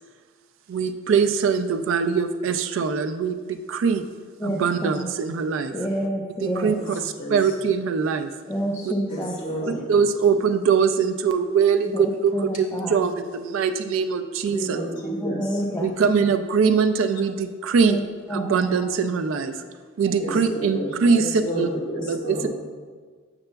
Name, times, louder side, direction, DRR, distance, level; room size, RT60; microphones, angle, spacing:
voice 1, 0.7-4.0 4.4-5.7 6.4-8.3 9.9-14.8 15.8-18.0 18.3-19.5 20.0-21.2 21.6-21.7 22.1-22.4, right 6 dB, 70° right, 9 dB, 0.3 m, -22 dB
voice 2, 4.4-5.1 5.7-6.7 8.5-9.4 11.8-12.0 12.3-13.1 15.2-15.9 17.8-18.0 18.3-18.9, equal, 15° left, -3 dB, 0.4 m, -28 dB
voice 3, 6.6-7.4 9.1-9.9 14.4-15.6 20.2-22.5, equal, 40° left, -2 dB, 1.3 m, -31 dB
6.9 x 6.6 x 2.2 m, 1.5 s
head